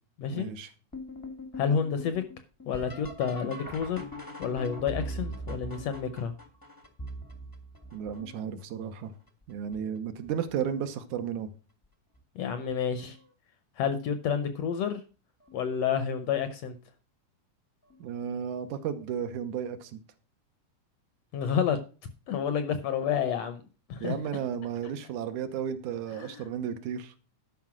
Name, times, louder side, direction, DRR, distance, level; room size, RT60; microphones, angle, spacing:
voice 1, 0.3-0.7 7.9-9.1 9.5-11.5 18.0-20.0 24.0-27.1, right 8 dB, 75° right, 2.3 m, -33 dB
sound 1, 0.9-8.6 9.3-9.8 10.2-10.9 12.2-12.3 13.0-13.3 15.5-15.6 17.9-18.0, equal, 20° left, 0.5 m, -41 dB
voice 2, 1.5-2.2 2.7-4.0 4.4-6.3 12.3-13.2 13.8-15.0 15.5-16.7 21.3-21.8 22.3-23.6 23.9-24.2 26.1-26.4, left 7 dB, 70° left, 1.6 m, -29 dB
12.0 x 5.4 x 6.0 m
omnidirectional pair, 3.6 m